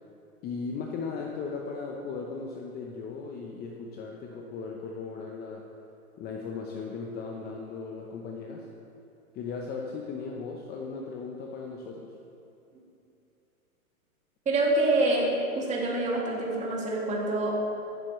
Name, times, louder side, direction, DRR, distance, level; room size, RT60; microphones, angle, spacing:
voice 1, 0.4-5.6 6.2-8.7 9.3-12.1, left 4 dB, 20° left, 1 dB, 0.8 m, -37 dB
voice 2, 14.5-15.3 15.5-17.6, right 2 dB, 15° right, -3 dB, 2.5 m, -26 dB
14.5 x 12.0 x 3.2 m, 2.8 s
hypercardioid pair, 125°, 43 cm